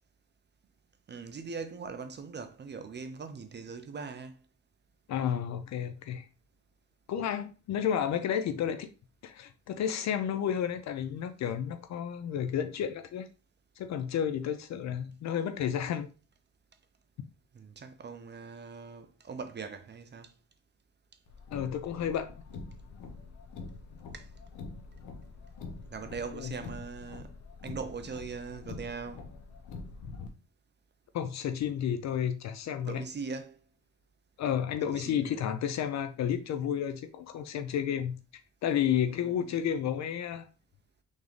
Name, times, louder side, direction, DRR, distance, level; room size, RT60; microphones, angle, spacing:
voice 1, 1.1-4.4 17.5-20.3 24.1-24.3 25.9-27.3 27.6-29.3 32.9-33.6 35.0-35.4 39.2-39.6, right 5 dB, 35° right, 0.6 m, -41 dB
voice 2, 5.1-6.3 7.1-8.9 9.2-13.3 13.8-16.1 21.5-22.3 26.3-26.5 31.1-33.0 34.4-38.1 38.6-40.5, left 9 dB, 65° left, 0.5 m, -31 dB
Car, 21.3-30.3, left 4 dB, 80° left, 0.9 m, -45 dB
3.9 x 3.5 x 3.2 m
cardioid pair, 90°, 30 cm